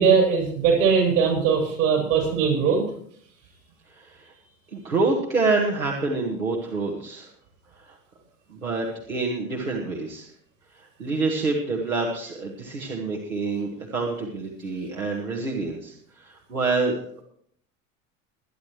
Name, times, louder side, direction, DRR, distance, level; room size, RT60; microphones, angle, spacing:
voice 1, 0.0-2.8, right 6 dB, 70° right, -1 dB, 7.2 m, -20 dB
voice 2, 3.9-4.3 4.7-7.3 7.8-8.0 8.5-10.3 10.7-17.2, right 3 dB, 90° right, -1 dB, 1.9 m, -27 dB
22.0 x 10.5 x 3.2 m, 0.64 s
hypercardioid pair, 75°, 41 cm